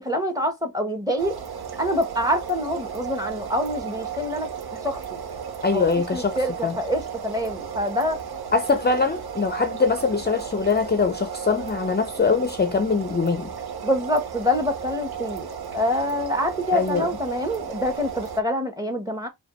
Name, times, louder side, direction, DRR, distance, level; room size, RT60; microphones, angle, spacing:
voice 1, 0.0-1.4 1.8-4.5 4.8-5.2 5.7-5.8 6.1-8.2 13.8-19.3, equal, 10° right, 1.1 m, -26 dB
sound 1, 1.2-18.4, right 7 dB, 85° right, 0.8 m, -34 dB
voice 2, 5.6-6.8 8.5-13.5 16.7-17.1, left 4 dB, 30° left, 0.5 m, -23 dB
4.9 x 2.3 x 3.0 m
wide cardioid pair, 75°, 37 cm